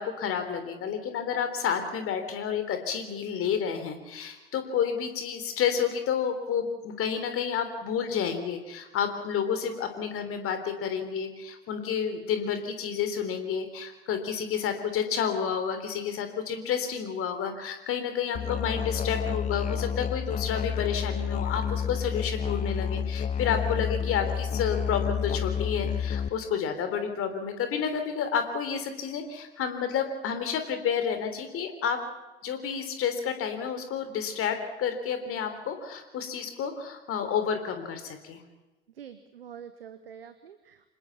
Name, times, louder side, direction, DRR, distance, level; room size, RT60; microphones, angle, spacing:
voice 1, 0.0-32.0 32.4-38.4, left 7 dB, 50° left, 8 dB, 3.6 m, -30 dB
Musical instrument, 18.3-26.3, left 7 dB, 25° left, 0.7 m, -30 dB
voice 2, 39.0-41.0, right 8 dB, 80° right, 12 dB, 1.1 m, -46 dB
26.5 x 20.5 x 5.9 m, 1.1 s
figure-of-eight pair, 60°, 29 cm